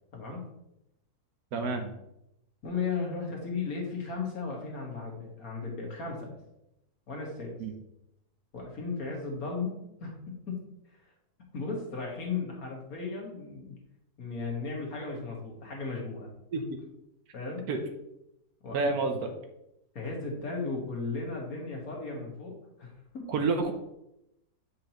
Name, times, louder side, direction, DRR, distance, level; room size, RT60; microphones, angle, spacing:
voice 1, 1.5-1.9 7.6-7.7 16.5-16.6 17.7-17.8 18.7-19.3 23.3-23.7, right 4 dB, 75° right, 5 dB, 1.3 m, -29 dB
voice 2, 2.6-6.4 7.1-7.6 8.5-10.6 11.5-13.8 14.2-16.3 17.3-17.6 18.6-18.9 20.0-22.5 22.8-23.3, left 4 dB, 65° left, -1 dB, 2.0 m, -35 dB
7.3 x 5.2 x 3.0 m, 0.84 s
omnidirectional pair, 1.7 m